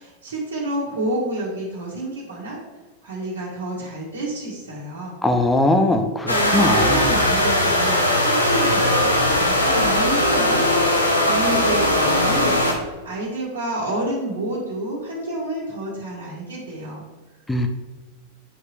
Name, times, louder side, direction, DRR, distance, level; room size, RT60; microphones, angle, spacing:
voice 1, 0.0-2.6 3.0-5.2 6.3-10.6 11.2-17.0, right 1 dB, 65° right, -9 dB, 2.2 m, -29 dB
voice 2, 5.2-7.0 17.5-17.7, left 1 dB, 10° left, 5 dB, 0.8 m, -20 dB
sound 1, 6.3-12.7, left 1 dB, 85° left, 1.1 m, -19 dB
9.9 x 4.7 x 3.4 m, 1.3 s
figure-of-eight pair, 90°, 0 cm